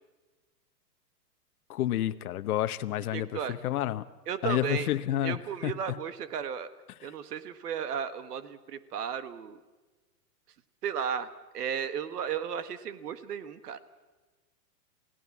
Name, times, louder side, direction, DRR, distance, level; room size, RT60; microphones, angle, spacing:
voice 1, 1.7-4.0 4.4-6.0, left 12 dB, 65° left, 11 dB, 1.0 m, -30 dB
voice 2, 3.1-3.6 4.3-4.9 5.2-6.7 7.0-9.6 10.8-11.3 11.5-13.8, right 8 dB, 70° right, 12 dB, 1.6 m, -34 dB
28.5 x 17.0 x 7.3 m, 1.2 s
hypercardioid pair, 150°, 49 cm